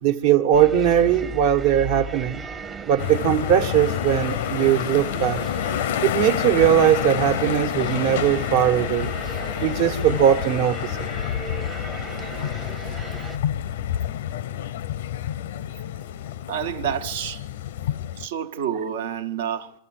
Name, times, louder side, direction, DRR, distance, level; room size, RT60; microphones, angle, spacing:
voice 1, 0.0-2.4 2.9-5.4 6.0-9.1 9.6-11.1, right 10 dB, 60° right, 1.4 m, -20 dB
sound 1, 0.5-13.4, right 4 dB, 20° right, 0.8 m, -37 dB
sound 2, 3.0-18.3, left 11 dB, 85° left, 0.6 m, -28 dB
voice 2, 16.5-17.5 18.2-19.7, right 9 dB, 80° right, 1.4 m, -28 dB
24.5 x 14.0 x 7.8 m
supercardioid pair, 150°, 0 cm